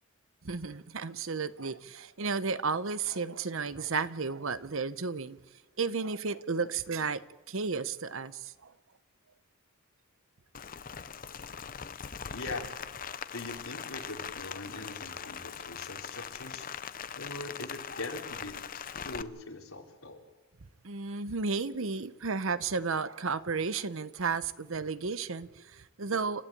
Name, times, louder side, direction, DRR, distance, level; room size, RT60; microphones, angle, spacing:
voice 1, 0.4-5.4 5.8-8.7 20.8-26.4, right 4 dB, 65° right, 0.9 m, -33 dB
Rain, 10.5-19.2, left 7 dB, 40° left, 0.7 m, -41 dB
voice 2, 12.3-12.7 13.3-16.7 17.2-20.2, left 2 dB, 75° left, 3.7 m, -42 dB
29.0 x 13.0 x 8.7 m
head